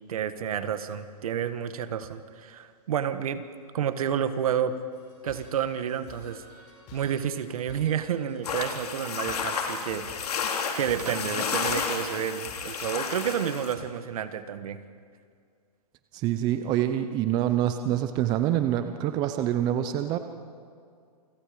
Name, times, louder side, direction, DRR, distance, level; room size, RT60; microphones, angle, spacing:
voice 1, 0.1-3.4 3.7-4.8 5.2-6.4 6.9-10.4 10.8-14.8, right 9 dB, 60° right, 11 dB, 1.7 m, -30 dB
sound 1, 4.9-13.3, left 3 dB, 30° left, 6.0 m, -50 dB
sound 2, 8.4-13.7, left 6 dB, 70° left, 3.9 m, -31 dB
sound 3, 9.2-9.9 10.7-10.8 11.0-11.5 12.2-13.4, right 5 dB, 80° right, 3.3 m, -44 dB
voice 2, 16.1-20.2, right 11 dB, 20° right, 9 dB, 0.8 m, -26 dB
28.5 x 25.5 x 5.3 m, 2.2 s
hypercardioid pair, 160°, 20 cm